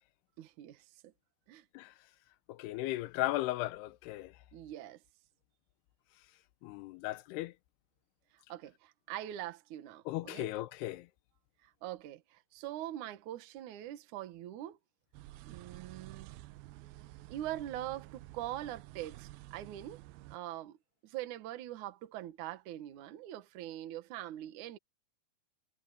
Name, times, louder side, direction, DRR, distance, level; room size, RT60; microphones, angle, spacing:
voice 1, 0.4-1.1 1.5-1.7 4.5-5.0 8.3-10.5 11.6-14.8 15.4-16.4 17.3-20.0 20.3-20.8 21.0-24.8, right 13 dB, 60° right, 2.4 m, -43 dB
voice 2, 2.5-4.4 6.6-7.5 10.1-11.1, left 17 dB, 85° left, 2.8 m, -36 dB
sound 1, 15.1-20.4, right 17 dB, 80° right, 2.4 m, -51 dB
omnidirectional pair, 4.6 m